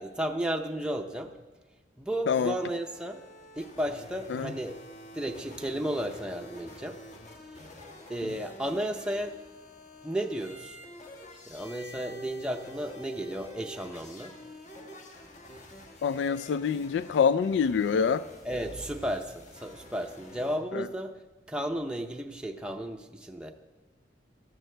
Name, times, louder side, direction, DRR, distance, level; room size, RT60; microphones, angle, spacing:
voice 1, 0.0-1.3 2.0-3.2 3.6-4.8 5.1-7.0 7.6-7.7 8.1-9.4 10.0-10.8 11.5-14.4 18.4-21.2 21.5-23.5, right 1 dB, 5° right, 0.6 m, -33 dB
sound 1, 2.3-20.6, left 1 dB, 45° left, 1.5 m, -48 dB
voice 2, 16.0-18.3 20.7-20.8, left 6 dB, 75° left, 0.3 m, -26 dB
15.5 x 13.0 x 3.3 m
head